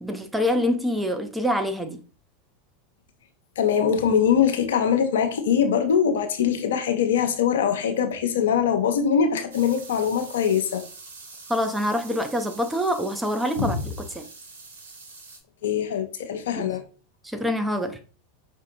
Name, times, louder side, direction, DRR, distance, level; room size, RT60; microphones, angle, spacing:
voice 1, 0.0-2.0 11.5-14.3 16.6-16.7 17.2-18.0, equal, 5° right, 0.6 m, -26 dB
voice 2, 3.6-10.8 13.6-13.8 15.6-16.8, left 7 dB, 70° left, 0.6 m, -22 dB
sound 1, 9.5-15.4, right 3 dB, 75° right, 1.0 m, -44 dB
5.2 x 2.7 x 2.7 m
hypercardioid pair, 90°, 0 cm